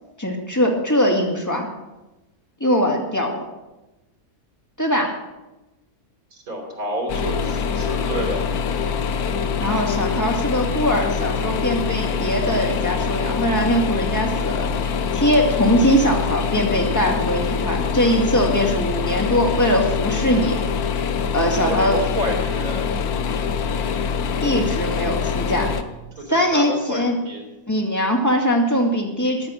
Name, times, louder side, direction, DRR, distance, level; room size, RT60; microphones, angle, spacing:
voice 1, 0.2-1.7 2.6-3.4 4.8-5.2 9.6-14.7 15.1-20.6 21.3-22.0 24.4-25.7 26.3-27.2 27.7-29.5, equal, 10° left, 0 dB, 2.3 m, -21 dB
voice 2, 6.3-8.4 21.6-22.8 26.2-27.4, equal, 75° right, 1 dB, 3.8 m, -29 dB
sound 1, 7.1-25.8, left 6 dB, 85° left, 1.4 m, -24 dB
15.0 x 10.5 x 6.5 m, 1.0 s
omnidirectional pair, 1.5 m